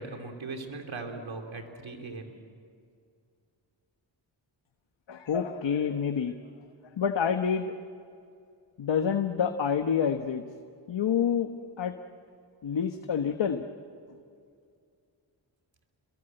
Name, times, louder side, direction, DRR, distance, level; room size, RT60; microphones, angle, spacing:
voice 1, 0.0-2.4, right 3 dB, 75° right, 4 dB, 3.3 m, -39 dB
voice 2, 5.1-6.3 7.0-7.7 8.8-10.4 10.9-11.5 11.8-11.9 12.6-13.6, left 7 dB, 65° left, 7 dB, 1.2 m, -27 dB
28.0 x 22.5 x 7.9 m, 2.3 s
cardioid pair, 50°, 47 cm